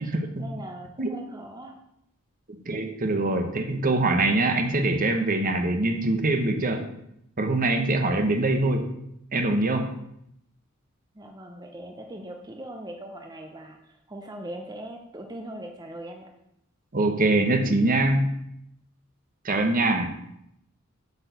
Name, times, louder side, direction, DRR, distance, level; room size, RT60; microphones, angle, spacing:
voice 1, 0.0-1.7 11.1-16.3, right 1 dB, 20° right, 2 dB, 0.7 m, -40 dB
voice 2, 2.7-6.9 7.4-8.9 9.3-9.9 16.9-18.3 19.4-20.1, right 2 dB, 40° right, 6 dB, 1.0 m, -23 dB
8.1 x 4.7 x 6.7 m, 0.78 s
head